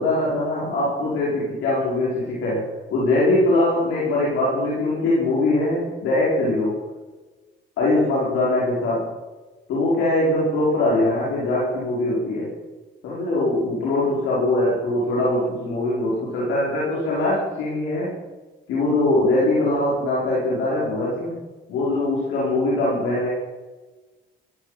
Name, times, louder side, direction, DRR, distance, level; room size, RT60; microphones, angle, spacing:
voice 1, 0.0-6.8 7.8-9.1 9.7-12.6 13.0-18.2 18.7-21.4 21.7-23.3, left 2 dB, 90° left, -6 dB, 4.9 m, -22 dB
16.5 x 15.0 x 5.1 m, 1.3 s
cardioid pair, 90°, 20 cm